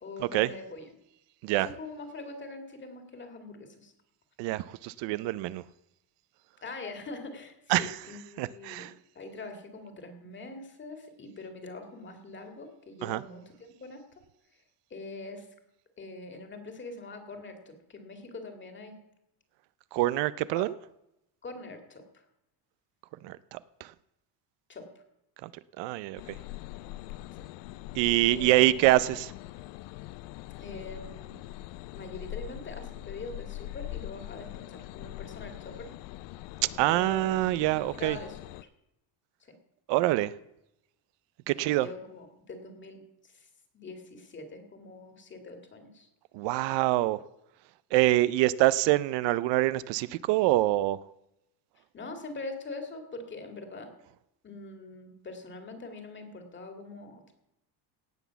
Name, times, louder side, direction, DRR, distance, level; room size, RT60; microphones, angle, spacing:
voice 1, 0.0-0.9 1.6-3.9 6.6-8.9 9.1-14.0 14.9-15.5 16.0-19.0 20.5-20.7 21.4-22.2 24.7-24.9 27.3-27.4 28.3-28.8 30.6-31.4 31.9-35.9 36.9-37.2 37.7-38.4 39.4-39.5 41.5-43.5 43.7-46.1 51.8-53.9 54.4-57.3, left 3 dB, 25° left, 5 dB, 2.2 m, -43 dB
voice 2, 4.4-5.6 7.7-8.0 8.4-8.9 13.0-13.2 19.9-20.7 23.2-23.9 25.4-25.5 25.8-26.2 27.9-29.3 36.8-38.2 39.9-40.3 41.5-41.9 46.3-47.2 47.9-51.0, right 16 dB, 75° right, 16 dB, 0.6 m, -25 dB
sound 1, 26.2-38.6, left 16 dB, 75° left, 0.5 m, -42 dB
17.5 x 6.1 x 7.0 m, 0.84 s
cardioid pair, 145°, 43 cm